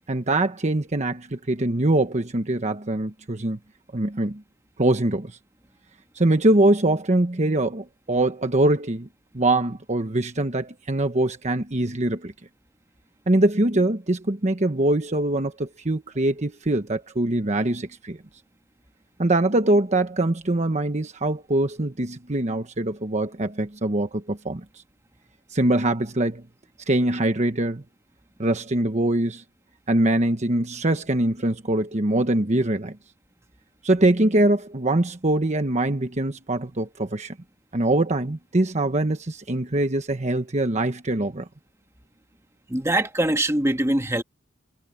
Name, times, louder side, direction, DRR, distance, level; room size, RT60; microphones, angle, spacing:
voice 1, 0.1-3.6 3.9-4.4 4.8-5.4 6.1-9.1 9.3-12.3 13.3-18.2 19.2-24.6 25.5-26.4 26.9-27.8 28.4-29.4 29.9-33.0 33.8-37.3 37.7-41.5, right 1 dB, 35° right, 1.1 m, -23 dB
voice 2, 42.7-44.2, right 1 dB, 15° right, 1.6 m, -22 dB
head